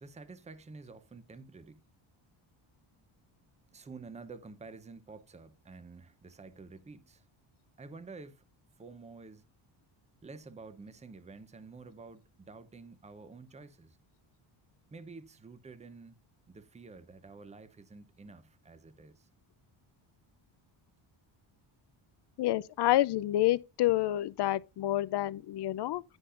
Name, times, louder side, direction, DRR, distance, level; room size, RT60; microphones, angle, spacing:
voice 1, 0.0-1.8 3.7-7.2 7.8-8.4 8.8-9.4 10.2-14.0 14.9-16.2 16.5-19.3, right 4 dB, 15° right, 0.7 m, -50 dB
voice 2, 22.4-26.0, left 15 dB, 55° left, 0.5 m, -28 dB
9.9 x 8.0 x 2.5 m
cardioid pair, 140°, 49 cm